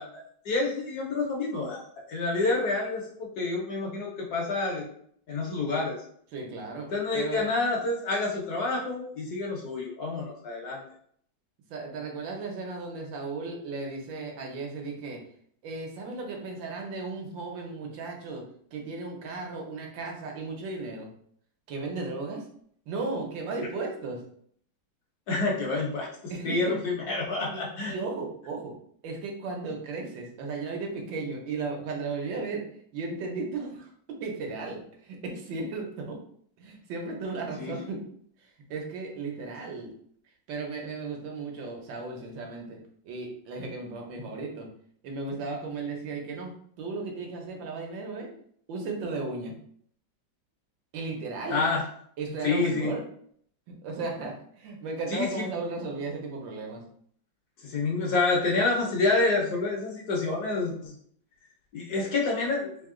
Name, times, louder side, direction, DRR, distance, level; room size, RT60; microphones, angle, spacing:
voice 1, 0.0-4.9 5.3-6.0 6.9-10.8 25.3-26.1 26.4-27.9 37.6-37.7 51.5-51.8 52.4-52.9 55.1-55.5 57.6-60.9 61.7-62.7, left 3 dB, 65° left, -1 dB, 1.1 m, -28 dB
voice 2, 6.3-6.9 7.1-7.4 11.7-15.2 15.6-18.4 18.7-21.1 21.7-22.5 22.9-24.2 26.3-26.7 27.4-28.7 29.0-32.6 32.9-36.2 36.6-38.0 38.4-39.9 40.5-42.8 43.0-44.7 45.0-48.3 48.7-49.6 50.9-51.7 52.2-53.0 53.7-56.8, right 3 dB, 75° right, 1 dB, 1.5 m, -35 dB
3.7 x 2.8 x 3.6 m, 0.63 s
omnidirectional pair, 2.1 m